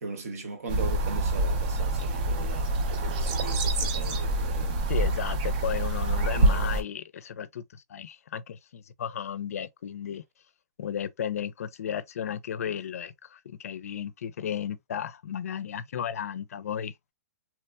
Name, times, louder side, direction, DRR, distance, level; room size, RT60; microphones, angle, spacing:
voice 1, 0.0-4.9, right 4 dB, 80° right, 1.1 m, -39 dB
sound 1, 0.7-6.8, right 2 dB, 35° right, 0.4 m, -26 dB
voice 2, 4.9-10.2 10.8-16.9, left 9 dB, 75° left, 0.4 m, -34 dB
3.0 x 2.1 x 2.2 m
hypercardioid pair, 165°, 8 cm